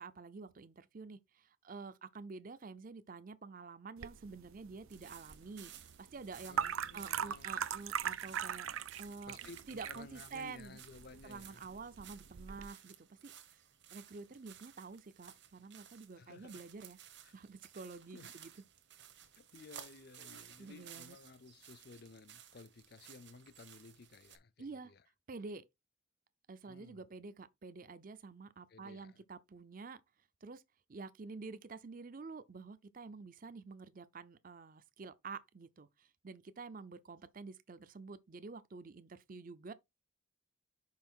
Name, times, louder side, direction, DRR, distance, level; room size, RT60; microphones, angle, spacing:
voice 1, 0.0-6.6 6.9-8.7 9.0-9.4 9.7-10.8 11.2-13.6 13.9-17.0 17.3-18.5 20.6-21.2 24.6-24.9 25.3-25.7 26.5-30.0 30.4-30.6 30.9-39.7, right 4 dB, 45° right, 0.5 m, -49 dB
sound 1, 4.0-12.7, right 8 dB, 90° right, 0.6 m, -41 dB
sound 2, 4.9-24.4, right 9 dB, 60° right, 1.2 m, -57 dB
voice 2, 6.5-7.6 9.3-11.7 16.2-16.6 17.2-17.3 18.1-18.3 19.4-25.0 26.7-27.1 28.7-29.2, left 4 dB, 50° left, 0.5 m, -56 dB
5.7 x 5.2 x 4.4 m
head